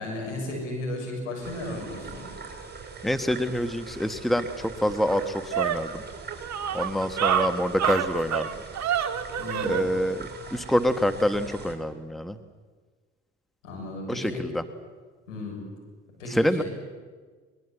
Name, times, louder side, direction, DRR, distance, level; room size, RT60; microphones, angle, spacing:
voice 1, 0.0-2.3 9.4-9.9 13.6-14.4 15.3-15.6 16.2-16.6, left 1 dB, 85° left, 0 dB, 6.8 m, -34 dB
sound 1, 1.4-11.7, right 4 dB, 25° right, 5.8 m, -42 dB
voice 2, 3.0-6.0 6.7-8.5 9.6-12.4 14.1-14.6 16.3-16.6, equal, ahead, 10 dB, 1.4 m, -26 dB
sound 2, 4.4-4.5 4.9-9.9, right 9 dB, 50° right, 1.8 m, -28 dB
22.0 x 21.0 x 8.1 m, 1.5 s
hypercardioid pair, 55°, 36 cm